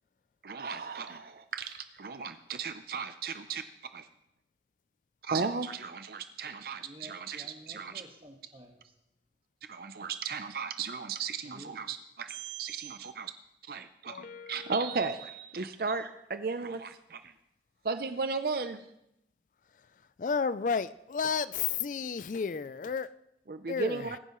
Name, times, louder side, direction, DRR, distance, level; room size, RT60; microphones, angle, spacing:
voice 1, 0.4-3.6 3.9-4.1 5.2-7.9 9.7-13.3 13.7-17.3 17.8-18.8 23.5-24.2, right 5 dB, 55° right, 10 dB, 0.5 m, -35 dB
voice 2, 6.8-8.9 11.4-11.8, equal, 30° right, 3 dB, 1.5 m, -52 dB
voice 3, 14.1-14.9 20.2-23.1 23.7-24.2, left 5 dB, 45° left, 15 dB, 0.3 m, -32 dB
21.0 x 10.0 x 3.1 m, 0.81 s
head